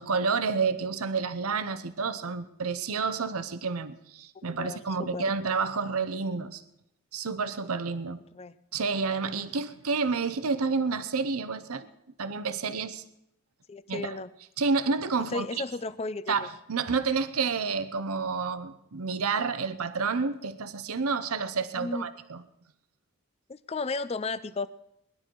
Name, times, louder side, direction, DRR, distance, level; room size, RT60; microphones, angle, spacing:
voice 1, 0.0-6.6 7.1-8.2 8.7-11.9 12.2-13.0 13.9-14.2 14.6-15.5 16.3-22.4, right 4 dB, 80° right, 12 dB, 0.8 m, -29 dB
voice 2, 4.3-4.8 5.1-5.2 8.3-8.6 13.7-14.3 15.3-16.5 21.8-22.1 23.5-24.7, left 3 dB, 25° left, 15 dB, 0.4 m, -34 dB
20.0 x 11.5 x 4.6 m, 0.80 s
head